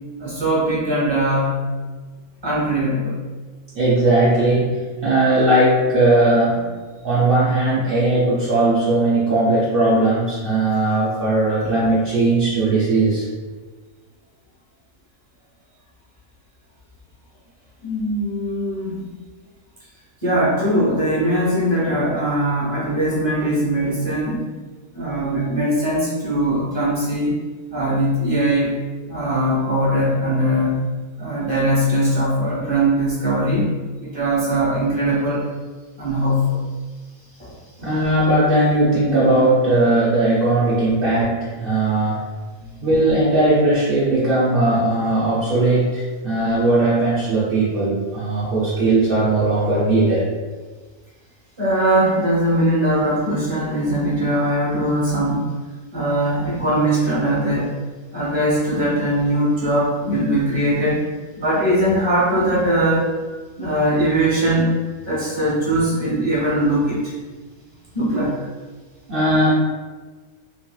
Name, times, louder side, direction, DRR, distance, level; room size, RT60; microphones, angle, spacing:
voice 1, 0.2-1.6 2.4-3.1 11.6-11.7 17.8-19.1 20.2-24.5 24.9-27.3 27.7-28.7 29.1-30.8 31.2-33.7 34.0-35.4 36.0-36.6 37.4-37.5 42.6-42.8 51.6-55.4 55.9-57.7 58.1-61.0 61.4-63.1 63.6-64.7 65.1-67.1 67.9-68.3, right 1 dB, 20° right, -7 dB, 0.9 m, -20 dB
voice 2, 3.7-6.8 7.0-13.3 37.8-42.2 42.8-50.3 69.1-69.5, right 2 dB, 65° right, -8 dB, 0.5 m, -18 dB
3.0 x 2.8 x 2.2 m, 1.4 s
omnidirectional pair, 1.6 m